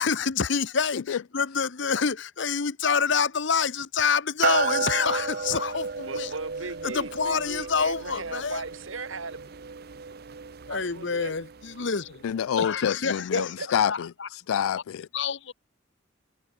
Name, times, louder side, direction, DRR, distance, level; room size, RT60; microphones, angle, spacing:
voice 1, 0.0-6.3 6.8-8.6 10.7-12.2 12.6-13.5 13.9-14.3 15.1-15.5, left 5 dB, 60° left, 0.8 m, -27 dB
sound 1, 4.4-12.1, right 5 dB, 45° right, 0.6 m, -33 dB
voice 2, 6.0-9.5 10.7-11.3 13.3-13.7, right 3 dB, 75° right, 2.5 m, -38 dB
voice 3, 12.2-15.1, left 8 dB, 85° left, 0.3 m, -27 dB
head